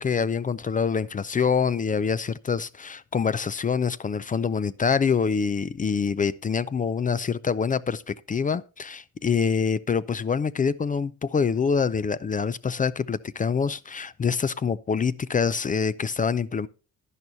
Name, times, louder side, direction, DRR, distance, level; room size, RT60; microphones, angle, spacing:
voice 1, 0.0-16.7, left 6 dB, 25° left, 0.4 m, -25 dB
11.0 x 10.5 x 2.7 m
cardioid pair, 90°, 30 cm